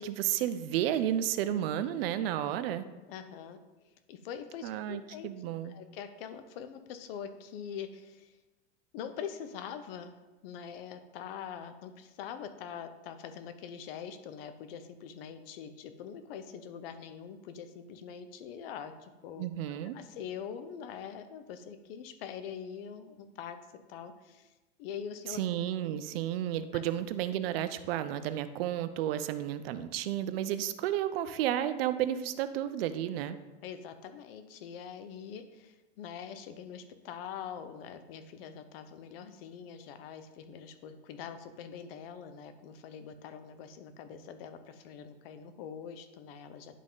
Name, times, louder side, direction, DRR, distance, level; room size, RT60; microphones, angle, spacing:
voice 1, 0.0-2.8 4.6-5.8 19.4-20.0 25.3-33.4, right 11 dB, 60° right, 12 dB, 0.6 m, -32 dB
voice 2, 3.1-3.6 4.1-5.3 5.7-8.4 8.9-10.2 10.4-19.5 19.9-23.6 23.9-24.5 24.8-25.4 26.7-26.8 33.6-46.8, left 8 dB, 55° left, 9 dB, 0.9 m, -44 dB
11.0 x 3.7 x 3.9 m, 1.1 s
supercardioid pair, 145°, 34 cm